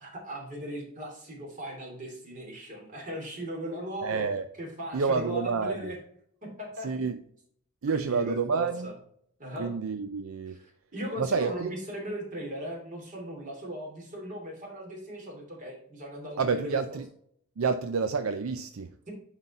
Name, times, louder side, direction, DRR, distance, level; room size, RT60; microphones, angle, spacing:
voice 1, 0.0-4.2 4.6-6.0 6.4-7.1 7.9-8.9 9.4-9.7 10.5-10.6 10.9-16.8, equal, 40° right, 0 dB, 2.9 m, -38 dB
voice 2, 4.0-4.5 4.9-5.9 6.8-7.2 7.8-8.9 9.6-10.6 11.2-11.7 16.4-17.1 17.6-18.9, right 5 dB, 75° right, 9 dB, 0.5 m, -29 dB
9.7 x 4.0 x 4.2 m, 0.67 s
head